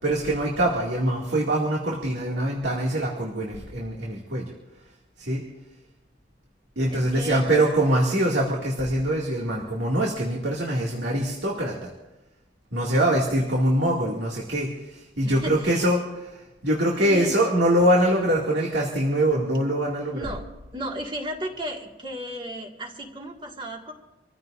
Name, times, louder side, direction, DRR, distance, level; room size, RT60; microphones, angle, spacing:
voice 1, 0.0-4.5 5.2-5.4 6.8-11.9 12.7-20.3, right 1 dB, 75° right, -3 dB, 2.3 m, -24 dB
voice 2, 6.9-7.5 15.2-15.9 17.0-17.3 20.1-20.5 20.7-23.9, right 1 dB, 30° right, 1 dB, 1.9 m, -34 dB
27.0 x 15.0 x 2.6 m, 1.0 s
head